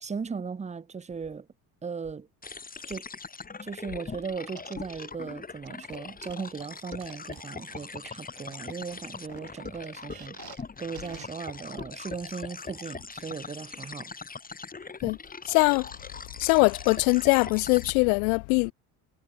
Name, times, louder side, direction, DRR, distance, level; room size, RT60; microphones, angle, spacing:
voice 1, 0.0-1.5 1.8-2.3 2.9-3.0 3.6-10.3 10.8-14.1, right 5 dB, 15° right, 0.8 m, -37 dB
sound 1, 2.4-17.9, left 4 dB, 20° left, 1.6 m, -41 dB
sound 2, 4.5-5.1 5.6-8.1 8.5-10.6 11.0-11.2 11.7-11.8, right 13 dB, 55° right, 2.5 m, -49 dB
voice 2, 15.5-15.9 16.4-18.7, left 33 dB, 80° left, 0.7 m, -22 dB
hypercardioid pair, 70°, 44 cm